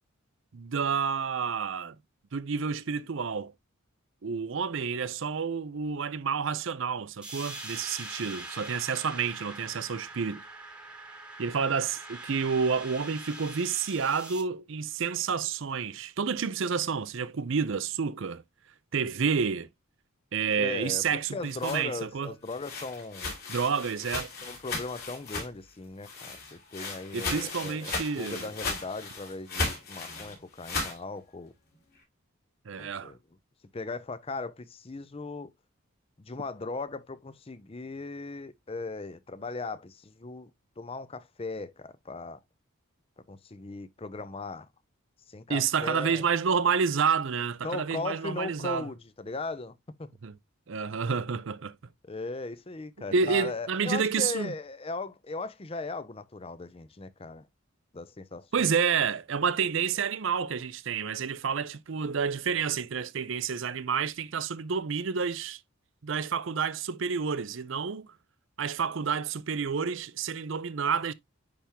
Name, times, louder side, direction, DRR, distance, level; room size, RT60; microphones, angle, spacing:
voice 1, 0.5-2.0 2.3-3.5 4.2-10.4 11.4-18.4 18.9-19.7 20.3-22.3 23.5-24.3 27.1-28.5 32.7-33.1 45.5-48.8 50.2-50.3 50.7-51.7 53.1-54.5 58.5-65.6 66.0-68.1 68.6-71.1, right 6 dB, 60° right, 0.5 m, -29 dB
sound 1, 7.2-14.4, right 2 dB, 5° right, 1.2 m, -43 dB
voice 2, 20.6-23.3 24.4-31.5 32.8-33.2 33.7-35.5 36.2-40.5 40.8-42.4 43.3-44.7 45.3-46.2 47.6-50.1 52.1-57.5 57.9-58.7, left 3 dB, 25° left, 0.5 m, -38 dB
sound 2, 21.2-25.7 26.0-31.0, left 3 dB, 45° left, 3.6 m, -36 dB
10.0 x 3.5 x 2.9 m
head